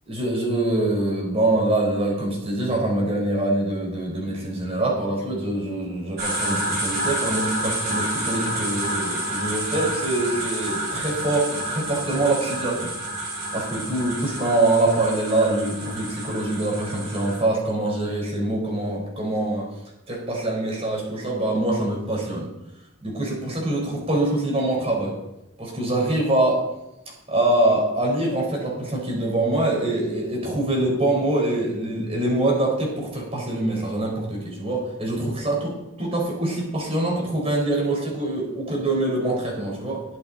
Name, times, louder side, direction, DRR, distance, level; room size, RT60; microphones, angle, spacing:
voice 1, 0.1-12.9 13.5-19.7 20.1-22.5 23.0-25.2 25.6-26.6 27.3-40.0, right 2 dB, 30° right, -1 dB, 4.5 m, -24 dB
sound 1, 6.2-17.4, right 1 dB, 50° right, 5.2 m, -29 dB
19.5 x 7.9 x 4.3 m, 0.89 s
head